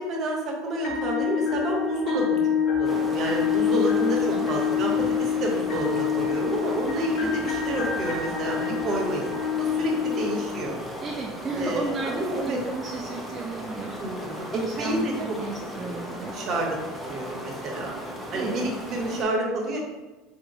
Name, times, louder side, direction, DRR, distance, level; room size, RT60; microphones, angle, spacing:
voice 1, 0.0-2.4 2.7-10.8 11.5-12.6 14.0-15.1 15.6-16.0 16.3-16.8 17.1-17.9 18.3-19.8, right 1 dB, 45° right, -1 dB, 1.1 m, -29 dB
sound 1, 0.8-10.9, left 7 dB, 55° left, 1.0 m, -26 dB
sound 2, 2.8-19.2, equal, 10° left, 0.8 m, -37 dB
voice 2, 11.0-14.0 14.5-16.4 18.3-18.6, right 3 dB, 30° right, 1 dB, 0.4 m, -34 dB
4.1 x 2.7 x 2.9 m, 1.2 s
supercardioid pair, 115°, 0 cm